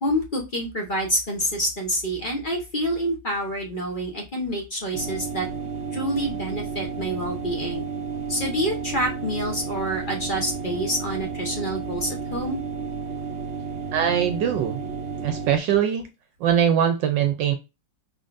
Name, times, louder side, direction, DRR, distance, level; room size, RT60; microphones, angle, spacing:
voice 1, 0.0-5.5 5.9-7.9 8.3-12.6, equal, 35° left, 0.9 m, -27 dB
sound 1, 4.9-15.6, right 5 dB, 60° right, 0.7 m, -32 dB
voice 2, 13.9-14.8 15.2-16.1 16.4-17.5, right 9 dB, 75° right, 1.2 m, -22 dB
4.9 x 3.8 x 2.6 m
omnidirectional pair, 2.1 m